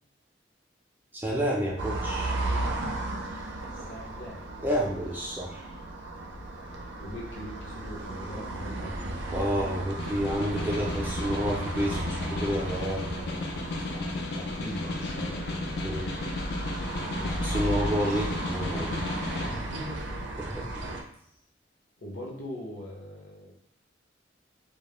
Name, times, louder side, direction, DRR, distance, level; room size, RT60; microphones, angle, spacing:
voice 1, 1.1-2.3 4.6-5.7 9.3-13.1 15.8-16.1 17.4-19.0 20.4-20.7, equal, 10° right, -4 dB, 0.4 m, -29 dB
sound 1, 1.8-21.0, right 1 dB, 80° right, 0.4 m, -35 dB
voice 2, 3.7-5.0 7.0-9.0 13.2-17.3 19.4-20.2 22.0-23.5, left 1 dB, 75° left, -3 dB, 0.8 m, -42 dB
Snare drum, 9.9-19.5, left 3 dB, 60° left, 0.3 m, -35 dB
2.2 x 2.0 x 2.9 m, 0.70 s
head